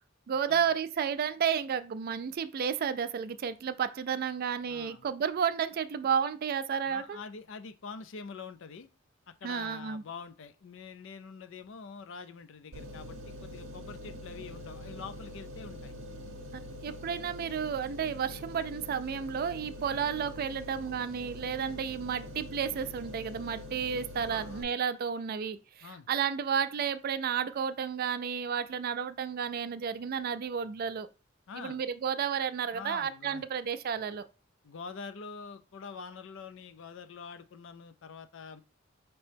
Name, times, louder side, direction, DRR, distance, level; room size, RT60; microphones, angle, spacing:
voice 1, 0.3-7.2 9.4-10.0 16.5-31.1 31.6-34.3, right 7 dB, 45° right, 0.3 m, -32 dB
voice 2, 4.7-5.1 6.9-8.9 9.3-15.9 16.9-17.0 24.3-24.7 25.8-26.1 31.5-31.8 32.7-33.4 34.6-38.6, left 5 dB, 65° left, 0.4 m, -45 dB
sound 1, 12.7-24.6, equal, 65° right, 0.7 m, -44 dB
5.3 x 2.9 x 3.3 m
head